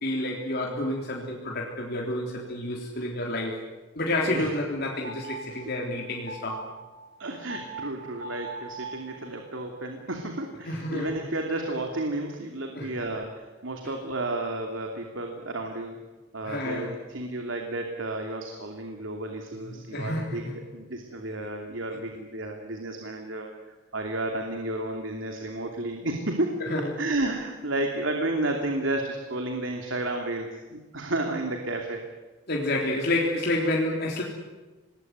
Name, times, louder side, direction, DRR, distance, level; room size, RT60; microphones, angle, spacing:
voice 1, 0.0-3.6 4.0-6.7 10.7-11.1 12.7-12.9 16.4-16.9 19.5-20.6 26.6-26.9 32.5-34.2, left 1 dB, 55° left, -1 dB, 3.6 m, -29 dB
sound 1, 4.3-9.5, right 3 dB, 50° right, 3.7 m, -41 dB
voice 2, 7.2-16.0 16.3-26.6 27.0-32.0, right 2 dB, 75° right, 3 dB, 2.9 m, -32 dB
26.5 x 20.5 x 9.6 m, 1.2 s
head